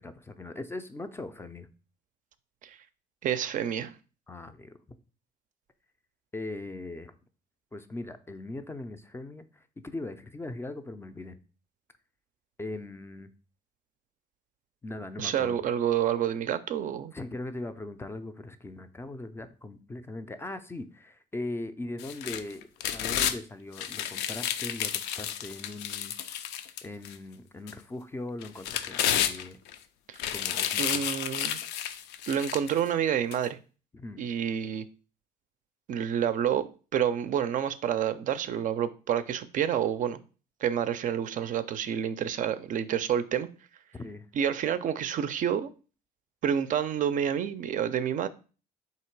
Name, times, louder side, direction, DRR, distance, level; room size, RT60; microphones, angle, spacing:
voice 1, 0.0-1.7 4.3-4.8 6.3-7.2 7.7-11.4 12.6-13.3 14.8-15.6 17.1-26.4 26.8-29.6 30.3-31.0 33.9-34.3 43.9-44.3, left 2 dB, 15° left, 0.4 m, -40 dB
voice 2, 3.2-3.9 15.2-17.1 30.1-30.2 30.8-31.6 32.3-33.6 34.2-34.8 35.9-40.2 40.6-43.5 44.3-45.7 46.4-48.3, right 9 dB, 50° right, 0.4 m, -28 dB
sound 1, 22.0-23.4 23.8-27.1 27.7-27.8 28.4-29.7 30.1-32.8 33.3-33.4, left 10 dB, 90° left, 0.4 m, -31 dB
3.7 x 2.8 x 4.5 m
cardioid pair, 110°, 17 cm